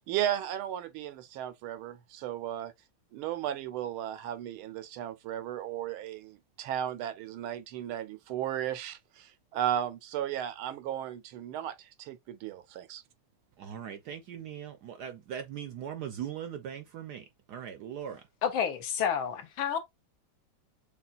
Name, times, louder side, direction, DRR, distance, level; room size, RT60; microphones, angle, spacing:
voice 1, 0.0-2.7 3.1-13.0, right 11 dB, 85° right, 1.5 m, -35 dB
voice 2, 13.6-18.2, right 9 dB, 70° right, 0.9 m, -40 dB
voice 3, 18.4-19.8, left 8 dB, 75° left, 1.4 m, -29 dB
6.8 x 2.3 x 2.4 m
omnidirectional pair, 2.3 m